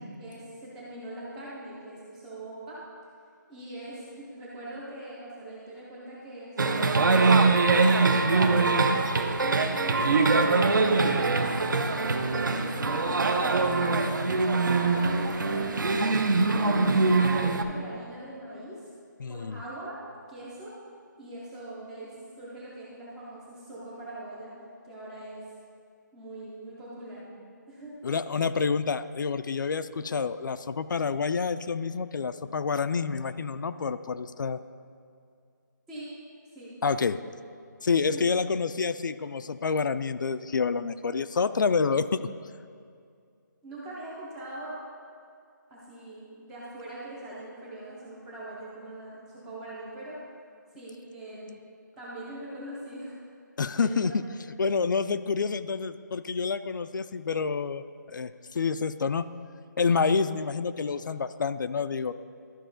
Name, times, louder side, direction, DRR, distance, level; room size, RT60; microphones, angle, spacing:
voice 1, 0.2-2.8 3.5-7.3 7.8-9.0 9.4-14.2 14.5-18.9 19.3-20.0 20.3-20.8 21.2-24.5 24.8-25.4 26.1-27.2 27.7-28.0 35.9-36.1 36.5-36.7 38.0-38.2 43.6-44.8 45.7-50.2 50.7-51.6 52.0-53.2 53.7-54.1 54.4-54.5, right 1 dB, 5° right, -7 dB, 0.3 m, -42 dB
sound 1, 6.6-17.6, right 3 dB, 70° right, 0.7 m, -23 dB
voice 2, 19.2-19.6 28.0-34.6 36.8-37.2 37.8-42.3 53.6-54.1 54.6-59.3 59.8-62.1, left 5 dB, 70° left, 12 dB, 0.4 m, -28 dB
12.5 x 4.9 x 3.8 m, 2.3 s
hypercardioid pair, 175°, 11 cm